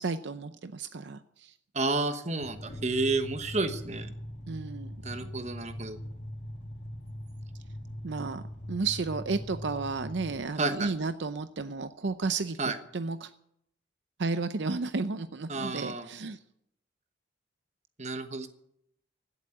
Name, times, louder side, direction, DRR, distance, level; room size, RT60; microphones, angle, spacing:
voice 1, 0.0-1.5 4.5-5.3 8.0-8.4 8.7-13.3 14.2-16.4, right 4 dB, 65° right, 11 dB, 0.6 m, -33 dB
voice 2, 1.7-4.1 5.0-6.0 10.6-10.9 12.6-12.8 15.5-16.1 18.0-18.5, right 3 dB, 35° right, 9 dB, 1.2 m, -31 dB
sound 1, 2.4-10.4, equal, 65° left, 2.2 m, -41 dB
16.0 x 8.2 x 9.0 m, 0.75 s
head